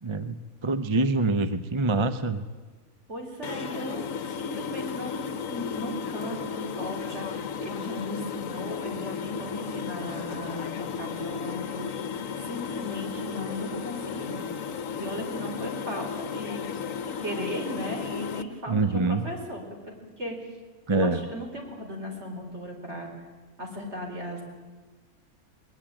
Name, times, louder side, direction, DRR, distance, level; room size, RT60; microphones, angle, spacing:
voice 1, 0.0-2.4 18.7-19.3 20.9-21.2, right 3 dB, 30° right, 11 dB, 0.6 m, -25 dB
voice 2, 3.1-11.9 12.4-14.4 15.0-20.3 20.9-23.1 23.6-24.4, equal, 50° right, 2 dB, 4.6 m, -37 dB
sound 1, 3.4-18.4, left 6 dB, 65° left, 1.3 m, -34 dB
21.0 x 20.0 x 8.9 m, 1.3 s
omnidirectional pair, 1.5 m